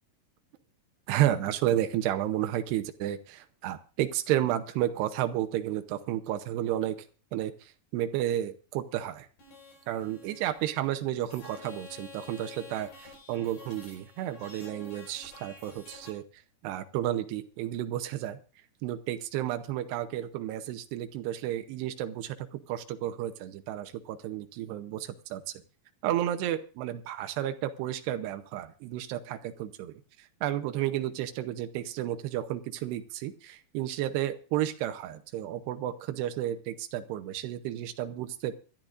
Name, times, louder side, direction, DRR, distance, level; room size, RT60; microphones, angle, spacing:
voice 1, 1.1-7.0 7.3-9.3 9.9-16.2 16.6-18.4 18.8-25.4 26.0-38.5, right 12 dB, 85° right, 9 dB, 3.0 m, -32 dB
sound 1, 9.4-16.1, left 3 dB, 70° left, 6.5 m, -50 dB
25.0 x 12.0 x 2.5 m, 0.36 s
omnidirectional pair, 4.7 m